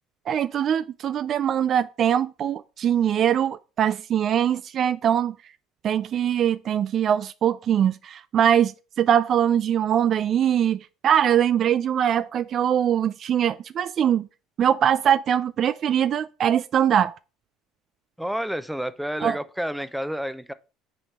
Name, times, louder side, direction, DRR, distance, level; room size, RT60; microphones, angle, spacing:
voice 1, 0.3-5.3 5.8-14.3 14.6-17.1 19.2-19.4, right 9 dB, 50° right, 0.3 m, -22 dB
voice 2, 18.2-20.5, equal, 5° right, 0.6 m, -30 dB
6.5 x 4.3 x 4.7 m
hypercardioid pair, 70°, 0 cm